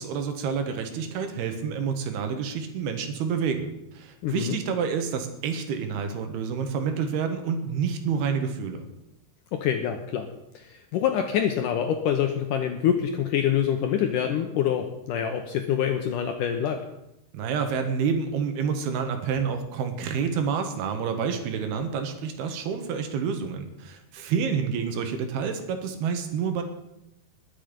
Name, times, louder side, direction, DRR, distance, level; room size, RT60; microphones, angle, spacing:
voice 1, 0.0-8.9 17.3-26.6, right 6 dB, 75° right, 6 dB, 3.3 m, -28 dB
voice 2, 4.2-4.6 9.5-10.3 10.5-16.9, left 9 dB, 75° left, 5 dB, 2.0 m, -26 dB
20.5 x 7.8 x 5.2 m, 0.87 s
omnidirectional pair, 4.6 m